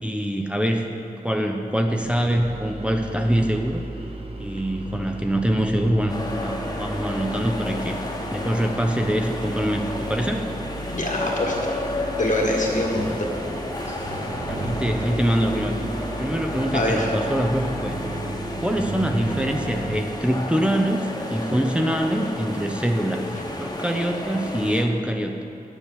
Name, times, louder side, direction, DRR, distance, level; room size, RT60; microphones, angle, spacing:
voice 1, 0.0-0.9 1.2-3.9 4.4-8.0 8.3-10.5 13.1-13.2 14.4-15.9 16.2-18.0 18.6-25.4, right 1 dB, 5° right, 3 dB, 0.7 m, -24 dB
sound 1, 1.9-20.0, right 2 dB, 40° right, 1.3 m, -35 dB
sound 2, 6.1-24.8, left 1 dB, 25° left, 1.3 m, -32 dB
voice 2, 10.9-11.8 12.2-13.3 13.8-13.9 16.7-17.1 23.3-23.4, left 1 dB, 55° left, -1 dB, 1.8 m, -25 dB
10.0 x 7.2 x 7.4 m, 2.6 s
wide cardioid pair, 85°, 15 cm